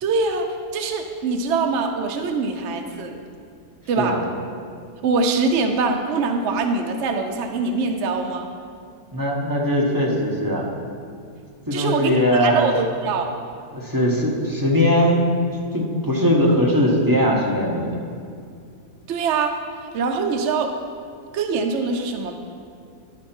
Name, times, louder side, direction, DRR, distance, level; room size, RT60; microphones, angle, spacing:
voice 1, 0.0-3.1 3.9-4.2 5.0-8.5 11.7-13.3 19.1-19.5 19.9-20.7 21.3-22.4, right 4 dB, 65° right, 4 dB, 0.8 m, -23 dB
voice 2, 9.1-10.7 11.7-12.7 13.7-15.3 15.7-18.0, equal, 15° right, -3 dB, 0.8 m, -20 dB
11.0 x 5.2 x 4.3 m, 2.4 s
omnidirectional pair, 1.6 m